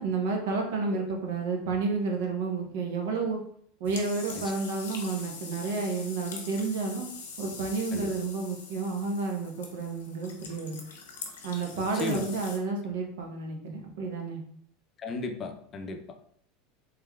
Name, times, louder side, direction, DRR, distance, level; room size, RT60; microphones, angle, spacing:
voice 1, 0.0-3.4 3.8-7.1 7.4-10.8 11.4-14.4, right 4 dB, 75° right, 2 dB, 0.8 m, -31 dB
sound 1, 3.8-12.6, left 5 dB, 90° left, 0.7 m, -43 dB
voice 2, 11.7-12.3 15.0-16.0, left 4 dB, 35° left, 5 dB, 0.5 m, -35 dB
3.4 x 3.2 x 2.3 m, 0.65 s
hypercardioid pair, 100°, 0 cm